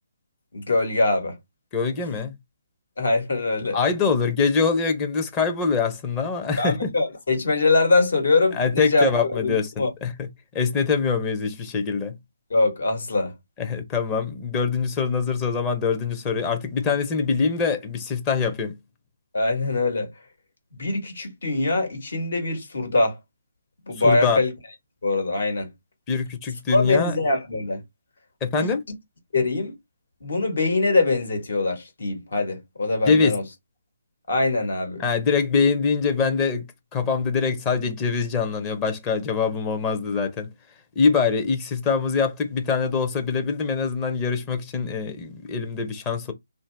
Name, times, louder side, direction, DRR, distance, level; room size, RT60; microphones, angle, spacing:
voice 1, 0.5-1.4 3.0-3.8 6.6-9.1 9.4-9.5 9.8-9.9 12.5-13.3 19.3-20.1 20.7-23.2 23.9-24.5 25.0-25.7 26.7-27.8 28.5-28.7 29.3-29.7 30.2-33.4 34.3-35.0, left 2 dB, 65° left, 1.6 m, -23 dB
voice 2, 1.7-2.4 3.7-6.9 8.6-10.3 10.5-12.2 13.6-18.8 24.0-24.4 26.1-27.1 28.4-28.8 33.1-33.3 35.0-36.6 36.9-40.5 41.0-46.3, left 5 dB, 20° left, 0.7 m, -24 dB
2.7 x 2.2 x 3.3 m
figure-of-eight pair, 150°, 0 cm